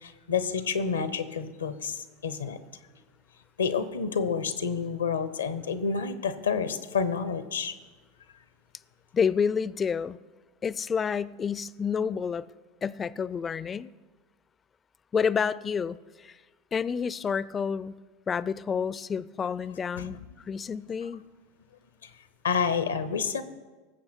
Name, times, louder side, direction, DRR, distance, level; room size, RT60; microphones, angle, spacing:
voice 1, 0.0-2.6 3.6-7.7 20.0-20.3 21.0-21.1 22.0-22.1 22.4-23.4, left 6 dB, 90° left, 0.8 m, -29 dB
voice 2, 9.1-10.2 10.6-12.5 12.8-13.9 15.1-16.4 16.7-17.9 18.3-21.2, left 6 dB, 25° left, 0.4 m, -29 dB
18.5 x 7.6 x 4.5 m
hypercardioid pair, 90°, 0 cm